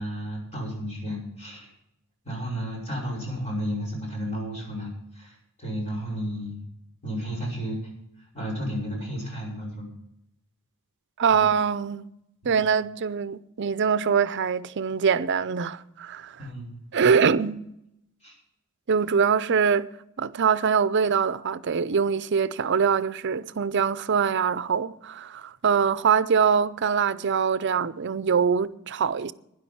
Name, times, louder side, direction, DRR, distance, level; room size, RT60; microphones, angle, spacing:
voice 1, 0.0-1.7 2.2-6.6 7.0-7.8 8.3-10.0 11.3-11.5 12.4-12.6 16.4-16.8 18.2-18.4, equal, 30° left, 5.6 m, -33 dB
voice 2, 11.2-12.1 12.4-16.4 16.9-17.6 18.9-19.9 20.2-29.3, right 6 dB, 55° right, 0.6 m, -23 dB
12.5 x 10.0 x 5.9 m
head